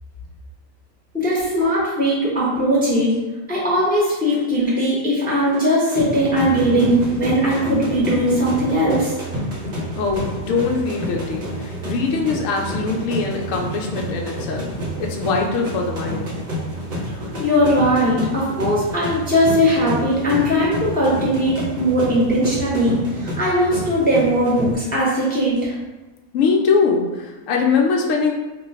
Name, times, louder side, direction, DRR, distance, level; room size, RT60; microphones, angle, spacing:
voice 1, 1.1-3.1 3.5-9.1 17.4-25.7, equal, 10° left, -6 dB, 0.6 m, -19 dB
sound 1, 5.2-24.7, equal, 45° right, 0.6 m, -29 dB
voice 2, 9.9-16.3 26.3-28.3, left 4 dB, 70° left, 1 dB, 0.9 m, -22 dB
3.1 x 2.2 x 4.1 m, 1.1 s
omnidirectional pair, 1.5 m